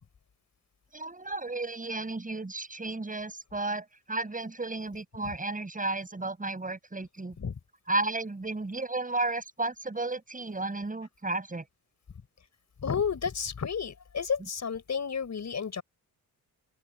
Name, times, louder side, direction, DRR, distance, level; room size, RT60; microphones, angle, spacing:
voice 1, 0.9-7.4 7.9-11.6, right 2 dB, 25° right, 7.6 m, -33 dB
voice 2, 12.8-15.8, left 6 dB, 50° left, 5.7 m, -31 dB
open air
cardioid pair, 75°, 36 cm